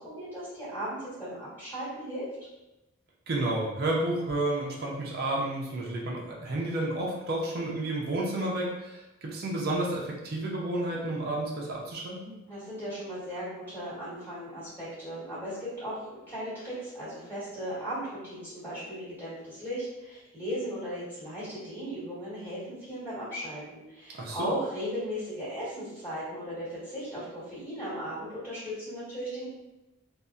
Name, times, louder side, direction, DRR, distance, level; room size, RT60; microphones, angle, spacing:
voice 1, 0.0-2.3 12.5-29.5, equal, 10° left, -12 dB, 1.2 m, -37 dB
voice 2, 3.3-12.3 24.1-24.5, right 1 dB, 50° right, -3 dB, 0.5 m, -31 dB
2.7 x 2.1 x 2.3 m, 0.96 s
head